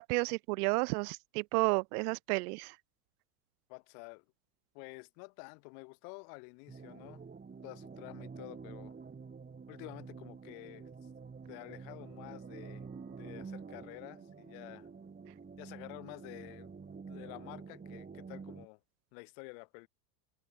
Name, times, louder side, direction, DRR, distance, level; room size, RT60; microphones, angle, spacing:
voice 1, 0.0-2.7, right 29 dB, 70° right, 0.5 m, -32 dB
voice 2, 3.7-4.2 4.7-7.2 7.6-8.9 9.7-11.1 11.5-14.9 15.6-16.7 17.1-18.8 19.1-19.9, left 40 dB or more, 70° left, 4.8 m, -50 dB
sound 1, 6.7-18.7, right 5 dB, 20° right, 3.5 m, -48 dB
sound 2, 10.0-15.4, right 17 dB, 50° right, 3.1 m, -66 dB
supercardioid pair, 100°, 47 cm